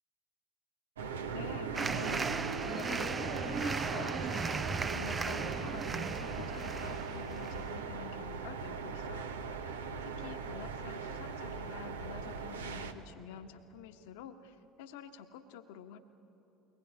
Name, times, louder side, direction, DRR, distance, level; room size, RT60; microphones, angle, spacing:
sound 1, 1.0-12.9, right 5 dB, 80° right, 1.0 m, -39 dB
voice 1, 1.3-4.6 4.9-9.3 10.0-16.0, left 8 dB, 70° left, 8 dB, 1.3 m, -48 dB
sound 2, 1.7-7.6, right 4 dB, 25° right, 0.5 m, -36 dB
22.0 x 20.0 x 9.7 m, 3.0 s
figure-of-eight pair, 65°, 0 cm